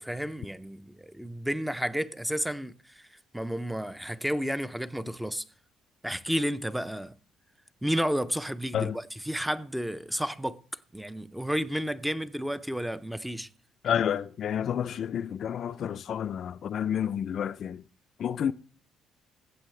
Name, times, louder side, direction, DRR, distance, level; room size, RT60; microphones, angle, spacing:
voice 1, 0.0-3.0 3.3-5.4 6.0-7.1 7.8-10.6 10.9-13.5, equal, 5° right, 0.5 m, -31 dB
voice 2, 13.8-17.8 18.2-18.5, left 9 dB, 55° left, 0.4 m, -30 dB
15.0 x 8.3 x 3.2 m
cardioid pair, 105°, 0 cm